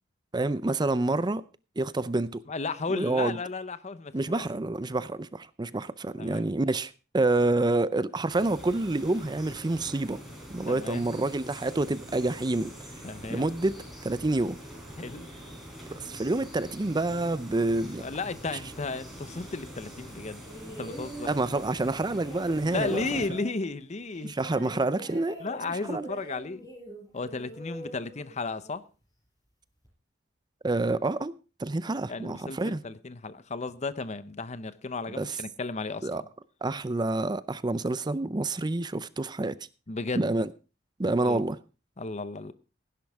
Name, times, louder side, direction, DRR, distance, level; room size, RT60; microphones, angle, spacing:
voice 1, 0.3-1.4 1.8-2.4 2.9-3.4 4.1-10.2 10.5-12.7 13.3-14.6 15.9-18.1 18.5-18.6 21.2-23.2 24.2-25.4 25.9-26.1 30.6-31.3 31.6-32.8 35.2-35.4 36.0-36.2 36.6-39.6 40.2-40.5 41.0-41.6, right 2 dB, 25° right, 0.5 m, -28 dB
voice 2, 2.5-4.5 6.2-6.6 10.7-11.1 13.0-13.5 15.0-15.3 18.0-20.4 20.8-21.3 22.7-24.3 25.4-26.7 27.1-28.8 32.1-36.3 39.9-40.3 41.2-41.4 42.0-42.5, left 3 dB, 40° left, 0.8 m, -34 dB
sound 1, 8.3-23.3, equal, ahead, 4.7 m, -44 dB
sound 2, 20.4-28.8 29.8-29.9, equal, 20° left, 5.7 m, -44 dB
16.5 x 10.5 x 3.5 m
head